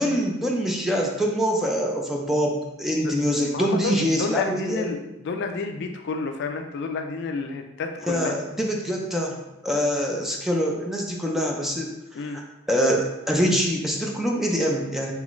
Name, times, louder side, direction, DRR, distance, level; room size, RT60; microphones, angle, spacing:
voice 1, 0.0-5.0 8.1-12.4 12.7-15.1, equal, ahead, -1 dB, 0.4 m, -25 dB
voice 2, 3.5-8.4 12.1-12.4, left 4 dB, 60° left, 5 dB, 0.4 m, -30 dB
3.7 x 3.0 x 3.1 m, 0.93 s
head